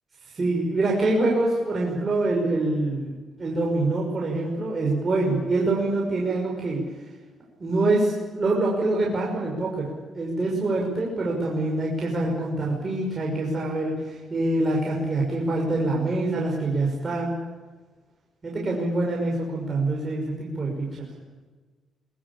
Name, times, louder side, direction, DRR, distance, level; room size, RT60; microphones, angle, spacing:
voice 1, 0.2-3.1 3.4-6.9 7.6-17.4 18.4-21.1, right 2 dB, 30° right, -2 dB, 5.9 m, -25 dB
22.5 x 21.0 x 8.8 m, 1.3 s
cardioid pair, 90°, 0 cm